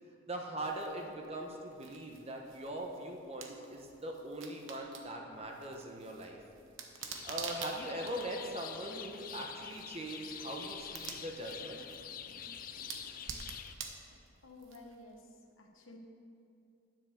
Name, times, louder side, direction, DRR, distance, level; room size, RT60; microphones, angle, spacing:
voice 1, 0.3-6.4 7.2-11.9, right 1 dB, 30° right, 1 dB, 1.0 m, -41 dB
sound 1, 0.6-15.2, right 6 dB, 70° right, 1.0 m, -49 dB
sound 2, 7.0-13.7, left 8 dB, 40° left, 0.4 m, -46 dB
voice 2, 14.4-16.0, left 2 dB, 75° left, 2 dB, 1.2 m, -53 dB
9.8 x 7.6 x 6.5 m, 2.5 s
head